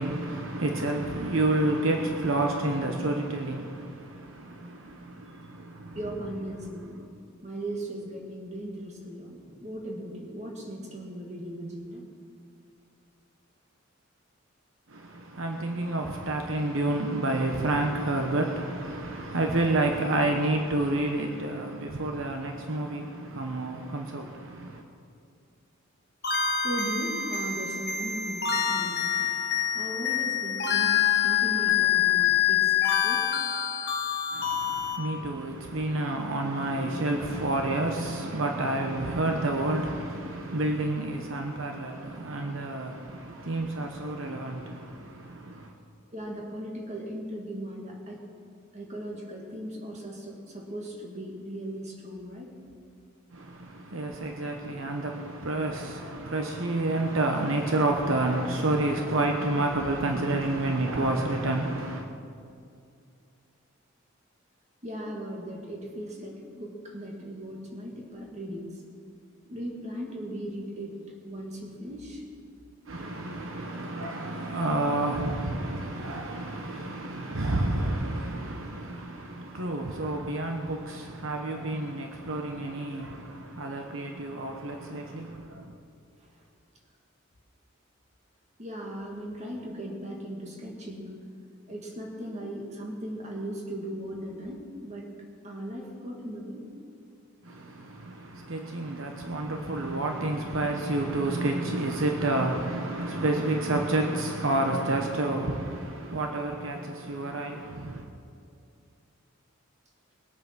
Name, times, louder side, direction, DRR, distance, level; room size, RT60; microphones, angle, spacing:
voice 1, 0.0-6.0 14.9-24.8 34.3-45.7 53.3-62.0 72.9-85.7 97.4-108.0, right 2 dB, 70° right, 1.1 m, -29 dB
voice 2, 5.9-7.1 7.4-12.1 26.6-29.3 29.7-33.3 46.1-48.2 48.7-52.5 64.8-68.8 69.5-72.2 86.2-86.5 88.6-91.2 91.7-95.1 95.4-96.7, equal, 35° right, 2.3 m, -38 dB
sound 1, 26.2-35.0, left 9 dB, 55° left, 1.2 m, -26 dB
20.5 x 8.6 x 6.2 m
head